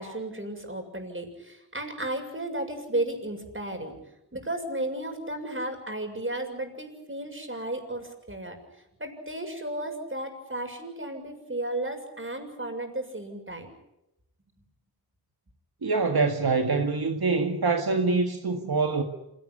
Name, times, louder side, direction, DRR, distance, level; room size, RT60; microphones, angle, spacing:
voice 1, 0.0-4.0 4.3-8.6 9.0-13.7, right 1 dB, 30° right, 6.9 m, -34 dB
voice 2, 15.8-19.0, right 4 dB, 70° right, 1.9 m, -25 dB
27.0 x 18.0 x 9.9 m
wide cardioid pair, 60°, 39 cm